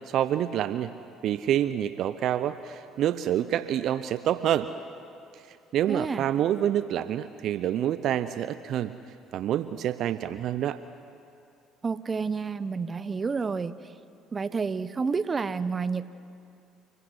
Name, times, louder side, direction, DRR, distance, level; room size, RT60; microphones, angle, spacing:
voice 1, 0.1-0.9 1.2-4.7 5.7-8.9 9.3-10.8, right 11 dB, 60° right, 13 dB, 0.7 m, -27 dB
voice 2, 5.9-6.3 11.8-13.8 14.3-16.1, right 5 dB, 35° right, 15 dB, 1.0 m, -29 dB
29.5 x 14.0 x 9.7 m, 2.5 s
hypercardioid pair, 65°, 0 cm